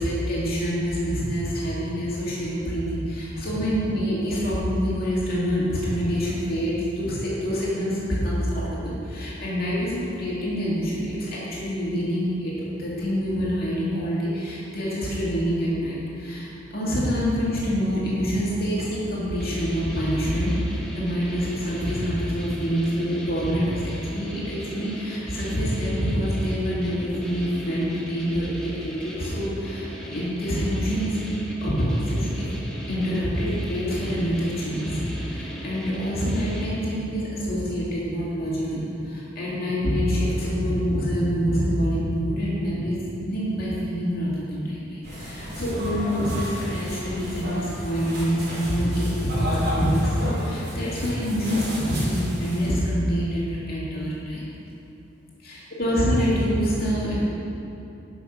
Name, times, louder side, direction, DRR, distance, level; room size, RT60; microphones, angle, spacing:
voice 1, 0.0-31.2 31.6-32.5 32.9-54.4 55.4-57.3, equal, 55° left, -7 dB, 2.3 m, -26 dB
sound 1, 19.4-37.1, equal, 5° left, 1.5 m, -39 dB
sound 2, 45.0-52.7, equal, 55° right, 2.5 m, -33 dB
11.0 x 5.8 x 6.1 m, 2.8 s
head